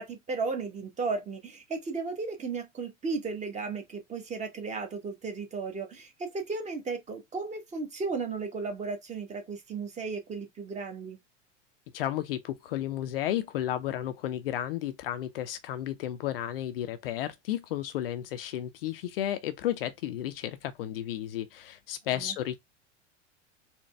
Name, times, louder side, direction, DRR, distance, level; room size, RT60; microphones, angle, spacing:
voice 1, 0.0-11.2 22.1-22.3, right 4 dB, 20° right, 1.1 m, -35 dB
voice 2, 11.9-22.6, left 12 dB, 50° left, 0.5 m, -33 dB
4.1 x 2.2 x 3.2 m
figure-of-eight pair, 85°, 37 cm